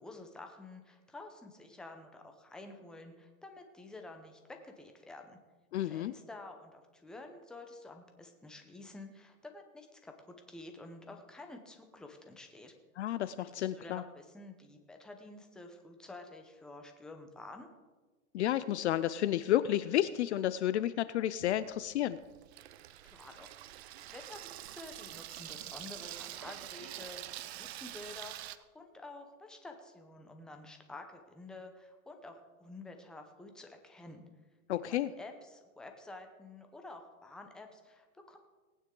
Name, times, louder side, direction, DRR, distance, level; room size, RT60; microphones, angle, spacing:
voice 1, 0.0-5.4 5.8-12.7 13.4-17.7 23.0-23.7 24.1-34.2 34.9-38.4, left 2 dB, ahead, 4 dB, 0.7 m, -50 dB
voice 2, 5.7-6.1 13.0-14.0 18.3-22.2 34.7-35.1, left 12 dB, 50° left, 15 dB, 0.5 m, -31 dB
Water tap faucet / Sink (filling or washing), 21.4-28.6, right 14 dB, 45° right, 0.6 m, -46 dB
18.5 x 9.2 x 3.8 m, 1.3 s
hypercardioid pair, 145°, 44 cm